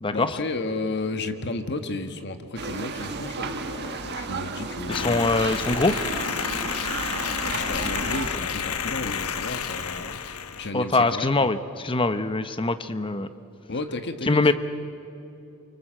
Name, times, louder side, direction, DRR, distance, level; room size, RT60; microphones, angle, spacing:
voice 1, 0.1-5.6 7.4-10.2 10.6-11.5 13.7-14.5, left 2 dB, 50° left, 7 dB, 1.6 m, -33 dB
sound 1, 2.6-8.3, right 4 dB, 50° right, 1.5 m, -33 dB
sound 2, 4.9-10.7, left 6 dB, 85° left, 1.1 m, -30 dB
voice 2, 4.9-5.9 10.7-11.6 11.8-13.3 14.3-14.5, left 3 dB, 25° left, 11 dB, 0.8 m, -23 dB
29.0 x 24.5 x 7.6 m, 2.9 s
head